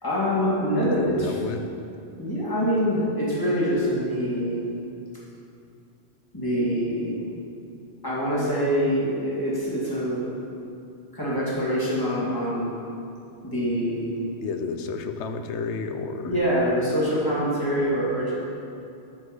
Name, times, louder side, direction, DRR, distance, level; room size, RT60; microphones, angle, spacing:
voice 1, 0.0-1.3 2.2-4.6 6.3-7.2 8.0-10.3 11.1-12.7 13.4-14.3 16.2-18.3, equal, 20° left, -8 dB, 2.5 m, -25 dB
voice 2, 0.8-1.6 14.4-16.3, left 5 dB, 85° left, 7 dB, 1.0 m, -31 dB
8.4 x 6.4 x 5.4 m, 2.6 s
omnidirectional pair, 1.1 m